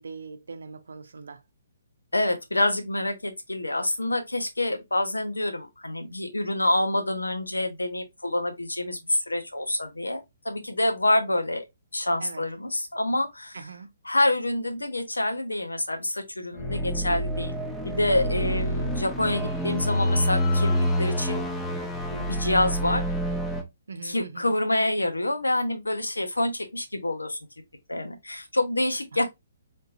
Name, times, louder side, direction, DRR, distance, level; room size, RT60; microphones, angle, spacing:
voice 1, 0.0-1.4 12.2-12.4 13.5-13.9 23.9-24.5 29.1-29.2, right 4 dB, 70° right, 0.6 m, -41 dB
voice 2, 2.1-11.6 11.9-13.6 14.0-17.6 17.8-20.7 21.0-21.4 22.1-23.0 24.0-27.4 27.9-29.2, left 1 dB, 90° left, 0.8 m, -27 dB
sound 1, 16.6-23.6, equal, 5° left, 0.6 m, -27 dB
3.5 x 2.8 x 2.6 m
figure-of-eight pair, 135°, 0 cm